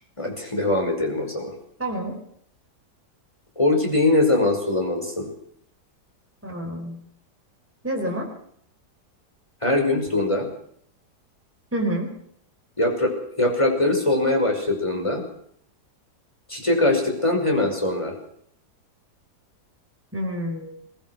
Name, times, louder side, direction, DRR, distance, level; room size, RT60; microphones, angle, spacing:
voice 1, 0.2-1.5 3.6-5.3 9.6-10.5 12.8-15.2 16.5-18.1, left 2 dB, 15° left, 2 dB, 5.7 m, -22 dB
voice 2, 1.8-2.2 6.4-7.0 7.8-8.3 11.7-12.1 20.1-20.7, right 1 dB, 10° right, 0 dB, 4.3 m, -28 dB
23.5 x 19.0 x 6.2 m, 0.67 s
omnidirectional pair, 1.8 m